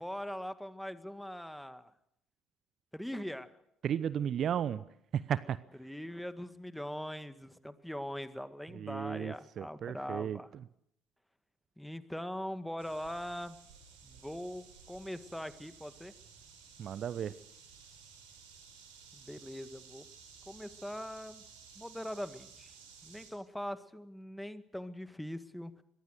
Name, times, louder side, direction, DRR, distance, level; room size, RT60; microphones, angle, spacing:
voice 1, 0.0-1.9 2.9-3.5 5.8-10.5 11.8-13.6 14.0-16.1 19.1-20.1 20.5-21.4 21.8-22.7 23.0-25.8, equal, 5° left, 11 dB, 1.9 m, -41 dB
voice 2, 3.8-4.8 5.1-5.6 8.7-10.6 16.8-17.3, right 9 dB, 50° right, 17 dB, 0.8 m, -34 dB
sound 1, 12.8-23.3, right 6 dB, 75° right, 5.3 m, -56 dB
24.5 x 22.0 x 6.6 m, 0.75 s
figure-of-eight pair, 50°, 0 cm